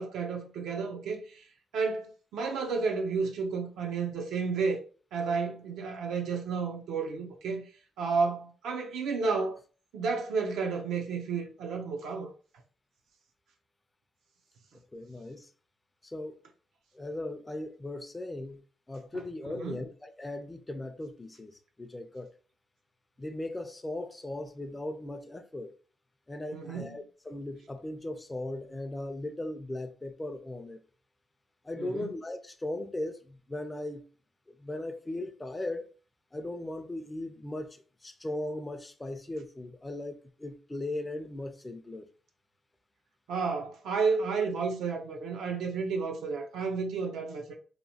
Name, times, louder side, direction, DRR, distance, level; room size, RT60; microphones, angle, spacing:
voice 1, 0.0-1.4 1.7-4.8 5.1-7.7 8.0-9.6 9.9-12.3 19.5-19.8 26.5-27.0 31.8-32.1 43.3-47.5, right 4 dB, 80° right, 0.5 m, -31 dB
voice 2, 14.9-15.5 16.0-16.4 16.9-18.6 18.9-22.3 23.2-25.7 26.3-30.8 31.6-34.0 34.5-35.9 36.3-42.1, left 1 dB, 15° left, 0.4 m, -38 dB
2.9 x 2.2 x 2.7 m
cardioid pair, 90°, 0 cm